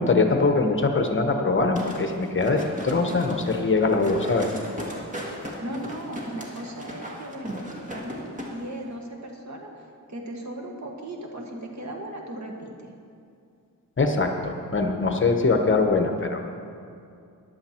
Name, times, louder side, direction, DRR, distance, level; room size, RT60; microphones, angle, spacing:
voice 1, 0.0-4.5 14.0-16.4, left 3 dB, 35° left, 4 dB, 1.0 m, -22 dB
sound 1, 1.8-8.5 8.8-8.9, equal, 25° right, 2.0 m, -37 dB
voice 2, 5.6-12.9, right 1 dB, 55° right, 1 dB, 1.8 m, -37 dB
14.5 x 11.0 x 4.4 m, 2.5 s
wide cardioid pair, 135°, 33 cm